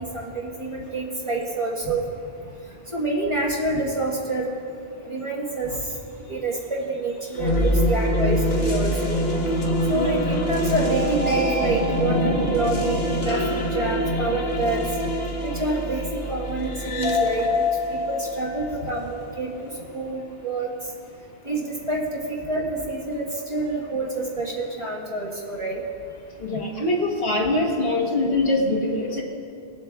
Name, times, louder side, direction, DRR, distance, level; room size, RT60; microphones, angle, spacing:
voice 1, 0.0-2.0 2.9-4.4 5.0-5.8 6.3-9.2 9.9-14.8 15.4-17.5 17.9-20.7 21.4-25.8, right 2 dB, 30° right, -5 dB, 1.5 m, -27 dB
sound 1, 7.3-19.5, equal, 45° left, 1.1 m, -24 dB
voice 2, 26.4-29.2, left 2 dB, 60° left, -1 dB, 1.4 m, -23 dB
20.0 x 7.6 x 2.3 m, 2.7 s
omnidirectional pair, 1.1 m